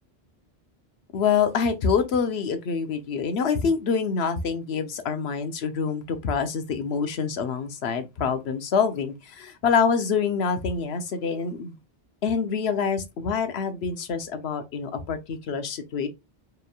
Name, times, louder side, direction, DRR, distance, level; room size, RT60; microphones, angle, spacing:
voice 1, 1.1-11.7 12.2-16.1, left 6 dB, 75° left, 1.0 m, -26 dB
4.7 x 3.2 x 2.3 m
omnidirectional pair, 1.1 m